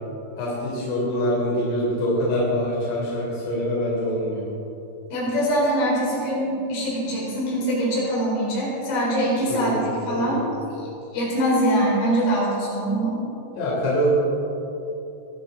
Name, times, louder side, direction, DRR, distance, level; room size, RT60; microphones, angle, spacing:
voice 1, 0.4-4.4 9.5-9.8 10.1-10.5 13.6-14.1, equal, 75° left, -6 dB, 6.1 m, -24 dB
voice 2, 5.1-10.5 11.1-13.2, right 1 dB, 90° left, -5 dB, 7.1 m, -23 dB
21.5 x 14.5 x 4.1 m, 3.0 s
omnidirectional pair, 5.7 m